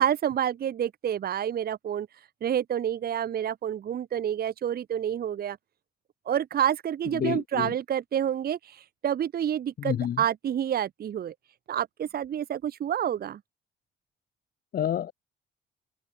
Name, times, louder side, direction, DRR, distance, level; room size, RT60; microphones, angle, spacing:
voice 1, 0.0-2.1 2.4-5.6 6.3-11.3 11.7-13.4, right 10 dB, 50° right, 0.8 m, -28 dB
voice 2, 7.2-7.7 9.8-10.2 14.7-15.1, left 10 dB, 50° left, 0.5 m, -28 dB
open air
cardioid pair, 90°, 20 cm